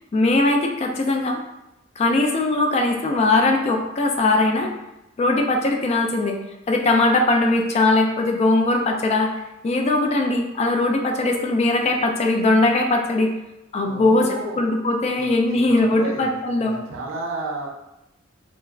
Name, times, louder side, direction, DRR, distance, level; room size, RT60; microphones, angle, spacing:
voice 1, 0.1-1.4 2.0-4.7 5.2-6.4 6.7-13.3 13.7-16.7, left 2 dB, 30° left, 3 dB, 0.3 m, -20 dB
voice 2, 13.8-14.7 15.2-17.7, right 2 dB, 70° right, -1 dB, 0.5 m, -32 dB
3.3 x 2.0 x 2.4 m, 0.91 s
head